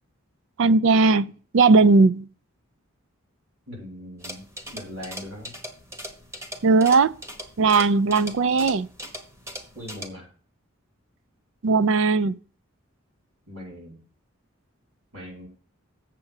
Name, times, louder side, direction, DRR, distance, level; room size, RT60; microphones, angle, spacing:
voice 1, 0.6-2.3 6.6-7.1 7.6-8.9 11.6-12.4, right 4 dB, 60° right, 0.4 m, -18 dB
voice 2, 3.7-4.4 4.7-5.5 7.7-7.8 8.2-8.3 9.7-10.3 13.5-14.0 15.1-15.5, left 1 dB, 90° right, 4.4 m, -40 dB
sound 1, 4.2-10.1, equal, 15° right, 1.2 m, -40 dB
7.7 x 7.3 x 6.4 m
head